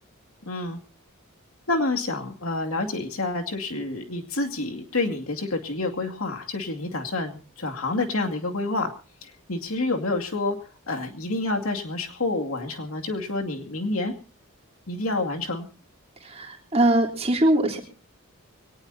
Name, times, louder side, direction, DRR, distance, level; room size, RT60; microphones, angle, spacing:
voice 1, 0.5-0.8 1.7-8.9 9.2-14.1 14.9-15.7, left 2 dB, 75° left, 4 dB, 2.5 m, -28 dB
voice 2, 16.2-17.8, right 1 dB, 30° right, 1 dB, 3.5 m, -22 dB
23.0 x 19.0 x 2.8 m, 0.35 s
head